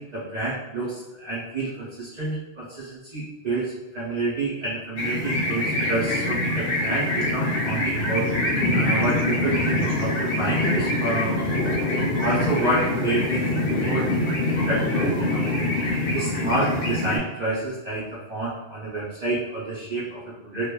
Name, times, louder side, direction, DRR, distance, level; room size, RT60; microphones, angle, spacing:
voice 1, 0.0-8.3 8.7-11.3 12.2-20.7, right 2 dB, 45° right, -7 dB, 0.6 m, -29 dB
sound 1, 5.0-17.2, left 1 dB, 60° left, 0.7 m, -24 dB
3.0 x 2.2 x 2.2 m, 1.1 s
omnidirectional pair, 1.2 m